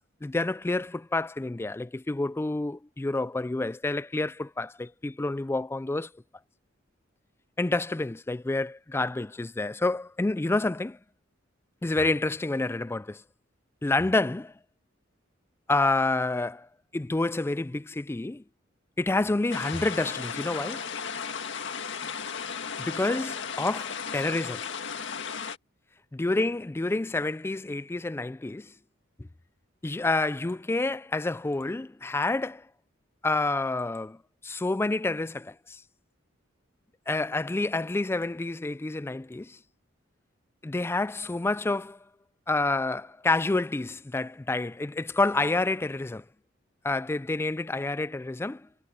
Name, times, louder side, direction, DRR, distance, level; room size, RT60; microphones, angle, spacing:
voice 1, 0.2-6.1 7.6-11.0 11.8-13.2 13.8-14.5 15.7-16.7 16.9-18.4 19.0-20.9 22.8-24.7 26.1-28.7 29.2-29.3 29.8-32.7 33.2-34.2 34.4-35.8 37.1-39.6 40.6-42.0 42.5-46.2 46.8-48.7, left 2 dB, 10° left, 0.3 m, -28 dB
sound 1, 19.5-25.6, left 6 dB, 65° left, 1.9 m, -35 dB
head